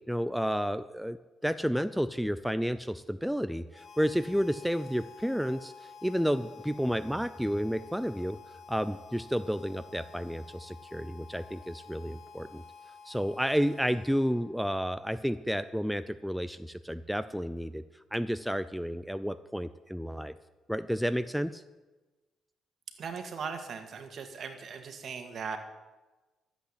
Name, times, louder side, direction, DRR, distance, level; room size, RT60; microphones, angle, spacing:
voice 1, 0.1-1.2 1.4-8.4 8.7-12.6 13.0-17.8 18.1-20.3 20.7-21.6, equal, ahead, 12 dB, 0.5 m, -31 dB
Harmonica, 3.7-14.7, left 5 dB, 65° left, 1.5 m, -51 dB
voice 2, 23.0-25.6, right 5 dB, 55° right, 7 dB, 2.0 m, -39 dB
13.0 x 8.3 x 8.4 m, 1.2 s
cardioid pair, 90°, 0 cm